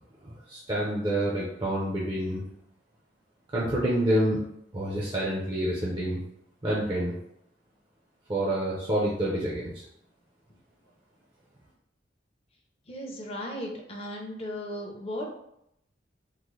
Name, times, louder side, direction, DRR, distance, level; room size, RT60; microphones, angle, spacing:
voice 1, 0.2-2.4 3.5-4.5 4.7-6.2 6.6-7.1 8.3-9.7, right 1 dB, 25° right, -6 dB, 0.5 m, -28 dB
voice 2, 12.9-15.2, equal, 35° left, 0 dB, 0.6 m, -36 dB
3.7 x 2.0 x 3.1 m, 0.77 s
head